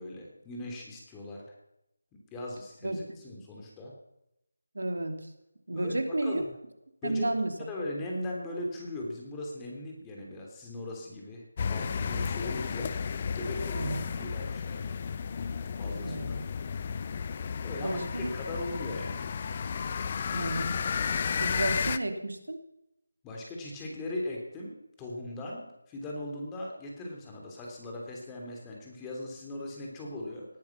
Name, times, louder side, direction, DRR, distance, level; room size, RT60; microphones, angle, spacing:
voice 1, 0.0-1.4 2.3-3.9 5.7-6.5 7.0-7.3 7.7-12.9 13.3-14.8 15.1-15.2 15.8-16.2 17.6-19.2 23.2-30.5, left 1 dB, 10° left, -1 dB, 3.0 m, -39 dB
voice 2, 4.7-5.2 5.7-6.4 7.0-7.5 13.7-14.0 16.0-16.4 17.8-18.3 20.3-20.8 21.4-22.6, right 2 dB, 70° right, 6 dB, 2.7 m, -31 dB
sound 1, 11.6-22.0, left 6 dB, 30° left, 0.7 m, -33 dB
19.0 x 11.0 x 5.8 m, 0.85 s
figure-of-eight pair, 160°, 0 cm